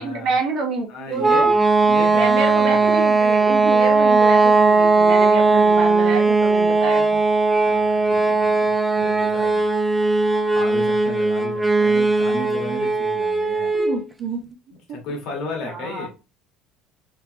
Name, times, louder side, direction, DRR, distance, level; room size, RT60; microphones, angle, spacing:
voice 1, 0.0-1.5 2.1-7.2 13.7-14.5 15.7-16.1, right 4 dB, 60° right, 3 dB, 1.1 m, -28 dB
voice 2, 0.9-1.5 1.9-2.9 7.6-9.6 10.5-13.7 14.9-16.1, left 2 dB, 65° left, 1 dB, 1.5 m, -34 dB
sound 1, 1.2-14.0, right 3 dB, 10° right, 0.5 m, -18 dB
3.4 x 2.8 x 2.9 m, 0.29 s
hypercardioid pair, 75°, 0 cm